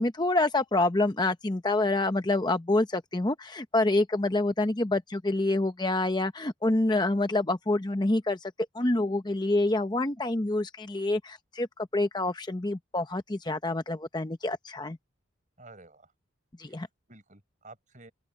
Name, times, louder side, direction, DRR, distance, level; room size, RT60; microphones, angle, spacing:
voice 1, 0.0-15.0 16.6-16.9, left 2 dB, 20° left, 0.7 m, -27 dB
voice 2, 15.6-16.1 16.7-18.1, right 2 dB, 40° right, 5.8 m, -52 dB
open air
head